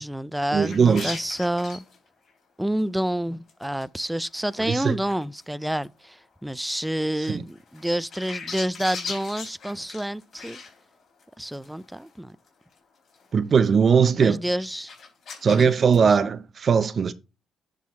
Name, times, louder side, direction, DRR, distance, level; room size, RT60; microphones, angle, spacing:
voice 1, 0.0-1.8 2.6-10.6 11.4-12.4 14.1-14.9 16.0-16.2, right 1 dB, 5° right, 0.3 m, -28 dB
voice 2, 0.5-1.2 4.7-5.0 7.3-7.4 13.3-14.4 15.4-17.1, right 6 dB, 45° right, 0.7 m, -20 dB
sound 1, 0.6-2.0 2.3-2.4 2.8-2.9 3.5-4.0 4.3-5.4 5.8-5.9 6.7-6.8 7.3-11.2 11.5-12.1 12.5-12.8 13.1-13.3 13.6-14.1 14.5-14.6 14.9-16.1, left 5 dB, 55° left, 3.8 m, -39 dB
10.0 x 3.8 x 4.2 m
cardioid pair, 90°, 0 cm